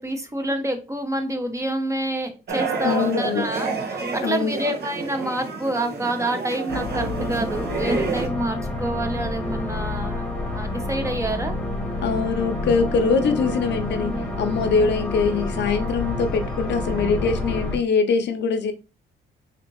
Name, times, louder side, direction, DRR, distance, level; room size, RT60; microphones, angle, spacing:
voice 1, 0.0-10.3 10.5-11.6, right 1 dB, 15° right, 6 dB, 0.9 m, -27 dB
sound 1, 2.5-8.3, right 4 dB, 55° right, 1.1 m, -29 dB
voice 2, 2.8-3.4 4.2-4.5 12.0-18.7, left 5 dB, 60° left, 7 dB, 0.6 m, -23 dB
sound 2, 6.7-17.8, left 1 dB, 5° left, 1.4 m, -28 dB
4.0 x 2.8 x 3.0 m, 0.29 s
cardioid pair, 90°, 20 cm